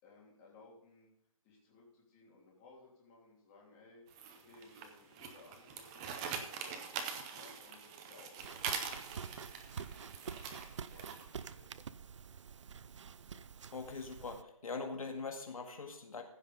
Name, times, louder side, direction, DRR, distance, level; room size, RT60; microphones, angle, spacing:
voice 1, 0.0-1.1 1.4-4.0 4.4-6.9 7.3-10.4 10.7-11.7, left 3 dB, 20° left, -4 dB, 3.1 m, -60 dB
sound 1, 4.1-11.4, right 6 dB, 10° right, 0.5 m, -43 dB
sound 2, 8.4-14.4, right 6 dB, 60° right, 0.5 m, -48 dB
voice 2, 13.7-16.2, left 4 dB, 80° left, 3 dB, 1.9 m, -42 dB
15.0 x 5.6 x 5.3 m, 0.74 s
hypercardioid pair, 165°, 18 cm